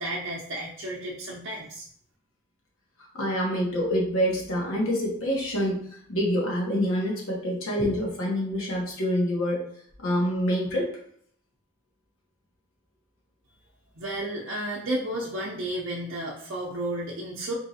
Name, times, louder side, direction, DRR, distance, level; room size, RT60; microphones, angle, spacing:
voice 1, 0.0-1.8 14.0-17.5, right 1 dB, 60° right, -5 dB, 0.6 m, -32 dB
voice 2, 3.1-5.8 6.1-9.6 10.0-10.9, equal, 85° left, -2 dB, 1.2 m, -26 dB
4.4 x 3.1 x 2.7 m, 0.63 s
head